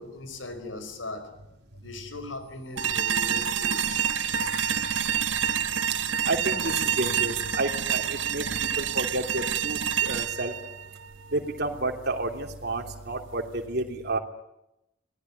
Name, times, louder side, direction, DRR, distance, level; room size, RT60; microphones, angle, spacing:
voice 1, 0.0-1.4 1.8-4.0, left 2 dB, 85° left, 9 dB, 5.1 m, -39 dB
sound 1, 2.4-6.2, left 5 dB, 60° left, 6.0 m, -49 dB
sound 2, 2.8-11.8, right 8 dB, 80° right, 1.1 m, -28 dB
voice 2, 6.2-10.5 11.3-14.2, right 2 dB, 60° right, 2 dB, 3.2 m, -30 dB
27.5 x 19.0 x 9.6 m, 0.89 s
head